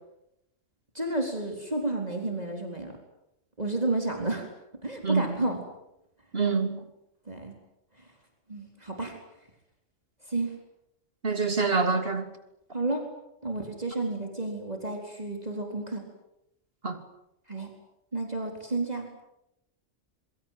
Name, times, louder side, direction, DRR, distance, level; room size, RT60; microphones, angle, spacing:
voice 1, 0.9-2.9 3.6-4.5 4.8-5.6 7.3-7.5 8.5-9.1 10.3-10.5 12.7-13.1 13.4-16.0 17.5-17.7 18.1-19.1, right 2 dB, 30° right, 4.2 m, -31 dB
voice 2, 6.3-6.8 11.2-12.2 16.8-17.0, right 4 dB, 50° right, 3.2 m, -26 dB
26.0 x 24.0 x 9.3 m
omnidirectional pair, 1.3 m